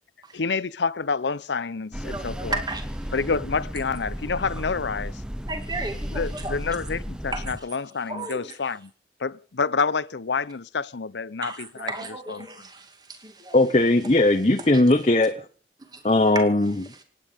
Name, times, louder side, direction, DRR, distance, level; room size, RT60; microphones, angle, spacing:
voice 1, 0.3-2.6 3.1-5.2 6.1-8.9 9.2-11.9 12.3-12.7, left 5 dB, 85° left, 0.7 m, -28 dB
sound 1, 1.9-7.6, equal, 5° right, 0.7 m, -34 dB
voice 2, 2.1-3.1 5.5-6.6 7.3-7.5 8.1-8.5 11.4-13.7 15.9-16.0 16.3-16.5 17.0-17.1, right 2 dB, 25° right, 2.3 m, -34 dB
voice 3, 13.5-15.4 16.0-16.8, left 2 dB, 35° left, 1.0 m, -19 dB
27.0 x 9.4 x 5.2 m
head